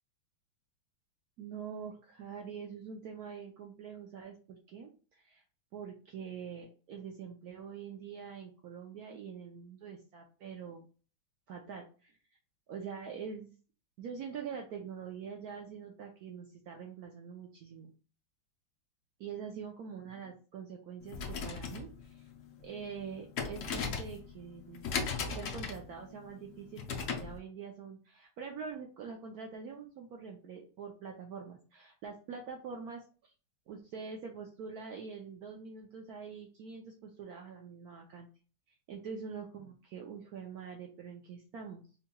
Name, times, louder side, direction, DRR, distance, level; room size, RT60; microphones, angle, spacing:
voice 1, 1.4-5.4 5.7-10.9 11.5-12.2 12.7-13.5 14.0-17.9 19.2-22.3 22.6-25.0 25.3-33.0 33.7-38.3 38.9-41.9, right 6 dB, 75° right, 1 dB, 0.8 m, -45 dB
sound 1, 21.0-27.4, left 5 dB, 85° left, 0.6 m, -38 dB
4.6 x 2.9 x 2.2 m, 0.36 s
omnidirectional pair, 2.2 m